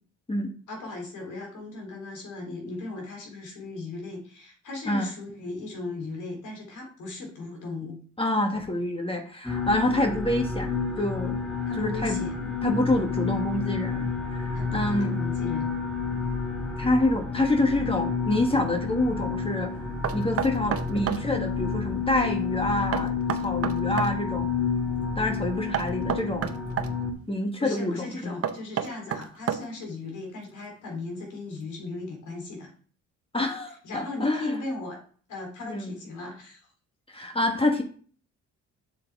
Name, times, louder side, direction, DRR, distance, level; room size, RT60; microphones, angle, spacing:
voice 1, 0.7-8.0 11.6-12.3 14.5-15.7 27.6-32.7 33.8-35.0 35.3-36.7, left 3 dB, 80° left, 1 dB, 3.6 m, -37 dB
voice 2, 8.2-10.7 11.0-11.4 11.7-12.2 12.6-15.2 16.8-19.7 20.1-24.5 25.2-26.5 27.3-28.3 33.3-34.6 35.6-35.9 37.1-37.8, left 1 dB, 20° left, 3 dB, 1.2 m, -27 dB
sound 1, 9.4-27.1, left 5 dB, ahead, 1.9 m, -30 dB
Knock, 20.0-21.3 22.9-24.1 25.7-26.9 28.4-29.9, right 9 dB, 50° right, 0.8 m, -29 dB
7.2 x 7.2 x 3.5 m, 0.44 s
cardioid pair, 90°, 30 cm